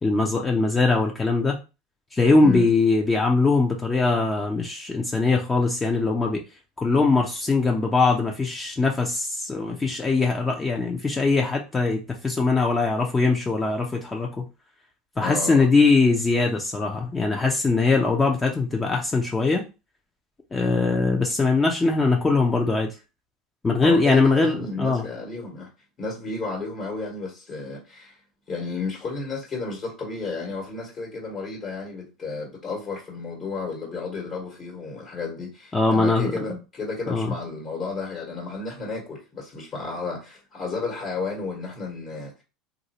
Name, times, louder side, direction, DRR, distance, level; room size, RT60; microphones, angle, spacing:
voice 1, 0.0-1.6 2.1-6.4 6.8-14.4 15.2-19.6 20.5-22.9 23.6-25.0 35.7-36.3 37.1-37.3, left 3 dB, 20° left, 0.6 m, -21 dB
voice 2, 15.2-15.7 23.8-25.7 26.0-28.2 28.5-42.4, left 4 dB, 40° left, 1.4 m, -32 dB
3.1 x 2.6 x 2.8 m
hypercardioid pair, 90°, 0 cm